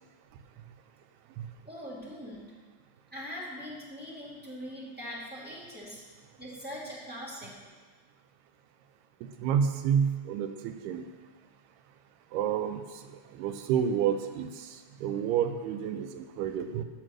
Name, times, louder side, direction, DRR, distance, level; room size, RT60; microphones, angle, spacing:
voice 1, 1.6-2.5 3.1-6.0 6.4-7.5, equal, 5° right, -7 dB, 0.8 m, -41 dB
voice 2, 9.2-11.0 12.3-12.8 13.4-14.8 15.0-16.8, right 8 dB, 85° right, 7 dB, 2.4 m, -29 dB
15.0 x 6.3 x 6.1 m, 1.4 s
omnidirectional pair, 5.0 m